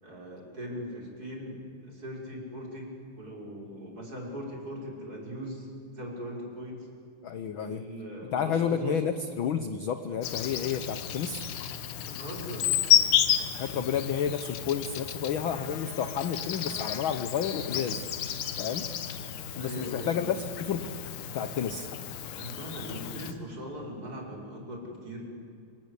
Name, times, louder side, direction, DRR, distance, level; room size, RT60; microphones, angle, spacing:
voice 1, 0.0-2.9 3.2-6.9 7.6-9.0 12.0-12.7 19.5-20.3 22.4-25.2, equal, 30° right, -1 dB, 6.2 m, -40 dB
voice 2, 7.2-7.8 8.3-11.4 13.5-18.0 18.6-18.9 19.6-20.9 21.3-21.9, left 7 dB, 65° left, 10 dB, 1.3 m, -30 dB
Insect, 10.2-23.3, left 10 dB, 80° left, 2.8 m, -31 dB
26.5 x 25.5 x 8.3 m, 2.4 s
omnidirectional pair, 3.4 m